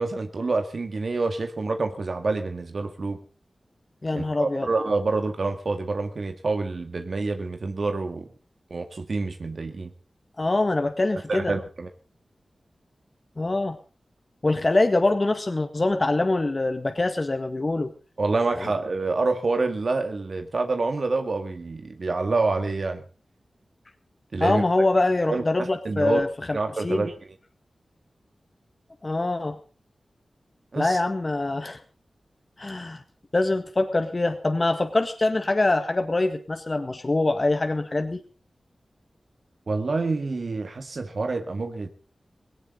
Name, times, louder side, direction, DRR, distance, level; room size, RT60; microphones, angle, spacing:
voice 1, 0.0-3.2 4.1-8.3 8.7-9.9 11.3-11.9 18.2-23.0 24.3-24.6 25.3-25.4 25.9-26.3 26.5-27.1 30.7-31.0 39.7-41.9, right 3 dB, 65° right, 6 dB, 1.9 m, -27 dB
voice 2, 4.0-4.7 10.4-11.5 13.4-13.8 14.4-17.9 18.5-18.7 24.4-27.0 29.0-29.6 30.8-31.8 32.6-33.0 33.3-38.2, left 2 dB, 40° left, 6 dB, 1.8 m, -24 dB
18.0 x 17.5 x 3.9 m, 0.37 s
cardioid pair, 55°, 0 cm